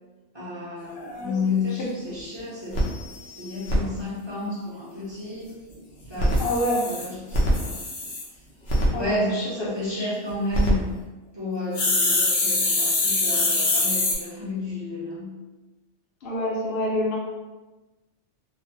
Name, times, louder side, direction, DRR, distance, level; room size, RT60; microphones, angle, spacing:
voice 1, 0.3-2.9 3.3-5.5 6.1-6.4 6.8-7.7 8.9-11.0 11.3-15.3, left 2 dB, 25° right, -8 dB, 0.7 m, -31 dB
voice 2, 0.9-1.3 6.4-6.9 8.9-10.1 16.2-17.2, left 1 dB, 60° left, -4 dB, 0.7 m, -27 dB
sound 1, 1.6-1.7 2.1-2.2 2.4-2.5 2.7-3.8 6.0-8.2 8.7-8.9 10.3-10.7 11.7-14.1, left 1 dB, 80° left, 1.1 m, -23 dB
3.1 x 2.1 x 2.7 m, 1.2 s
omnidirectional pair, 1.2 m